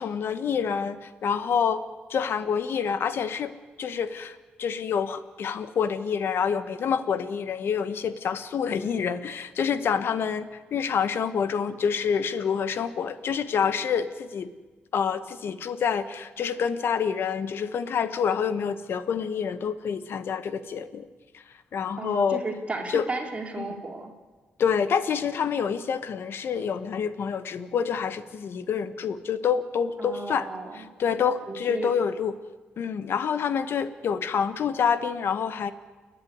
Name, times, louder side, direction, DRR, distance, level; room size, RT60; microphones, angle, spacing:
voice 1, 0.0-1.8 2.1-3.5 3.8-14.5 14.9-21.1 21.7-22.4 22.9-23.0 23.6-23.7 24.6-30.5 30.7-32.3 32.8-35.7, left 7 dB, 65° left, 12 dB, 1.3 m, -27 dB
voice 2, 22.0-24.1 30.0-30.9 31.5-31.9, right 3 dB, 30° right, 2 dB, 3.2 m, -34 dB
29.5 x 10.5 x 9.6 m, 1.3 s
cardioid pair, 110°, 4 cm